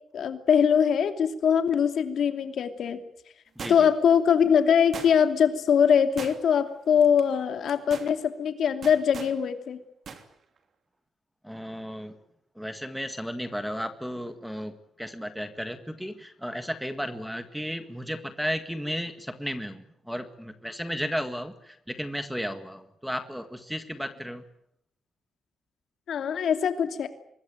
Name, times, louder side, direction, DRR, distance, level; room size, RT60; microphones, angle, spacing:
voice 1, 0.1-3.0 3.7-9.8 26.1-27.1, left 7 dB, 60° left, 7 dB, 2.8 m, -22 dB
voice 2, 3.6-3.9 11.4-12.2 12.6-24.4, equal, ahead, 9 dB, 1.7 m, -34 dB
sound 1, 3.6-4.1 4.9-5.4 6.2-6.7 7.0-7.2 7.7-8.1 8.8-9.4 10.1-10.3 10.6-10.7, right 5 dB, 50° right, 3.0 m, -40 dB
25.0 x 21.0 x 9.1 m, 0.72 s
wide cardioid pair, 160°, 0 cm